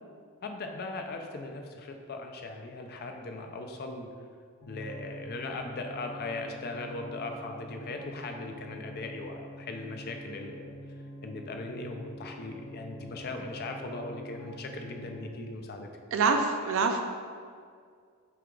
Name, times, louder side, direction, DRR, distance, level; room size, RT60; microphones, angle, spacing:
voice 1, 0.4-4.1 4.7-10.7 11.2-15.9, left 2 dB, 45° left, 4 dB, 0.4 m, -39 dB
sound 1, 4.6-15.3, equal, 75° left, 0.9 m, -46 dB
voice 2, 16.1-17.0, right 4 dB, 65° right, 5 dB, 0.4 m, -25 dB
5.9 x 2.3 x 3.7 m, 2.1 s
head